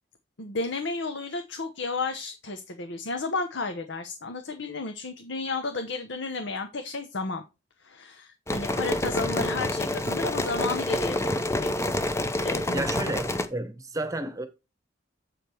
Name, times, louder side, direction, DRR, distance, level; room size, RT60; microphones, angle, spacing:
voice 1, 0.4-7.4 7.8-11.7 12.4-12.9, left 3 dB, 70° left, 0.8 m, -32 dB
sound 1, 8.5-13.5, left 1 dB, 15° left, 0.7 m, -28 dB
voice 2, 12.7-14.5, right 2 dB, 15° right, 1.1 m, -31 dB
7.8 x 5.1 x 4.5 m
head